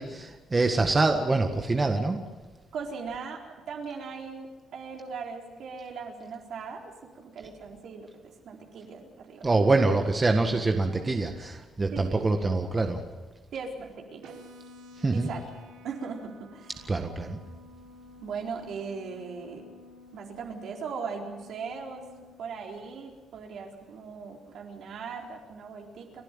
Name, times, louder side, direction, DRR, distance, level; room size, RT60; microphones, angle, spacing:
voice 1, 0.0-2.2 9.4-13.0 15.0-15.3 16.9-17.4, right 3 dB, 25° right, 5 dB, 1.7 m, -25 dB
voice 2, 2.7-8.1 8.4-9.4 11.9-12.5 13.5-14.3 15.1-15.4 15.8-16.8 18.2-19.7 20.1-22.0 22.4-26.2, right 5 dB, 70° right, 1 dB, 4.1 m, -39 dB
sound 1, 14.2-22.2, left 2 dB, 90° right, 4.1 m, -51 dB
29.5 x 11.5 x 9.1 m, 1.3 s
cardioid pair, 90°, 0 cm